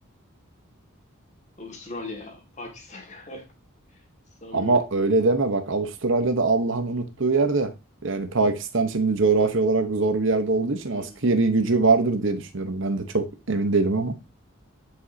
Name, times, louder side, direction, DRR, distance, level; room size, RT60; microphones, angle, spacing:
voice 1, 1.6-3.5 3.9-4.0 4.4-4.9 10.9-11.3, left 2 dB, 35° left, 1.9 m, -39 dB
voice 2, 4.5-7.7 8.0-14.2, right 3 dB, 60° right, 1.0 m, -23 dB
9.3 x 5.1 x 2.7 m
head